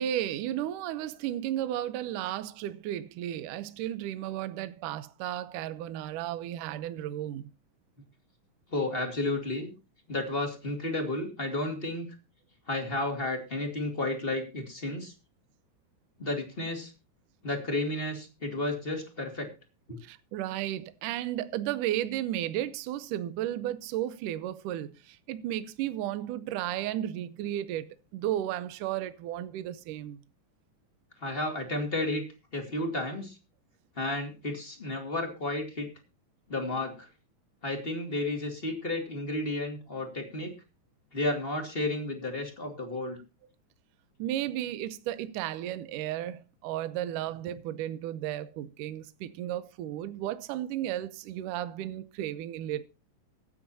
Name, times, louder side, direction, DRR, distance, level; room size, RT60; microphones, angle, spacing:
voice 1, 0.0-7.5 20.0-30.2 44.2-52.9, right 12 dB, 75° right, 2.2 m, -34 dB
voice 2, 8.7-9.7 10.1-12.1 12.7-15.1 16.2-16.9 17.4-19.5 31.2-32.2 32.5-33.4 34.0-35.9 36.5-37.1 37.6-40.5 41.1-43.2, left 2 dB, 20° left, 2.1 m, -32 dB
23.5 x 8.7 x 2.8 m
omnidirectional pair, 4.0 m